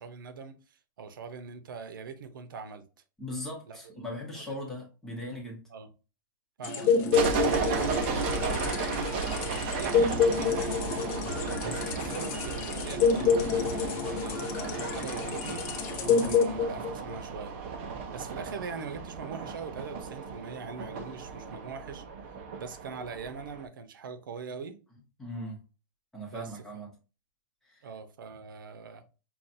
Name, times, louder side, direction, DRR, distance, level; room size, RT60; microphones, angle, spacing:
voice 1, 0.0-2.8 3.7-3.8 4.3-4.4 5.7-5.9 6.6-7.1 7.6-11.1 11.6-15.6 16.0-17.5 18.1-22.0 22.6-24.8 26.2-26.9 27.8-29.0, right 5 dB, 85° right, 0.7 m, -42 dB
voice 2, 3.2-5.6 11.6-11.8 25.2-25.6 26.1-26.9 27.6-27.8, left 1 dB, 5° left, 1.0 m, -39 dB
sound 1, 6.6-17.2, left 5 dB, 35° left, 0.8 m, -28 dB
sound 2, 7.1-23.6, right 5 dB, 35° right, 0.5 m, -34 dB
5.7 x 2.3 x 2.6 m
supercardioid pair, 170°, 11 cm